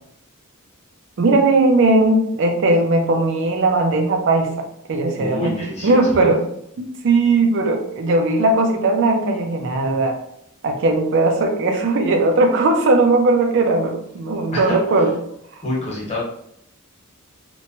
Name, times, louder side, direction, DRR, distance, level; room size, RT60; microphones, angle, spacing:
voice 1, 1.2-4.5 4.9-6.4 6.8-10.2 10.6-15.1 15.5-15.6, right 2 dB, 60° right, 3 dB, 0.4 m, -18 dB
voice 2, 5.2-6.3 14.5-14.7 15.6-16.2, left 1 dB, 30° left, -5 dB, 1.0 m, -27 dB
2.9 x 2.1 x 2.7 m, 0.73 s
head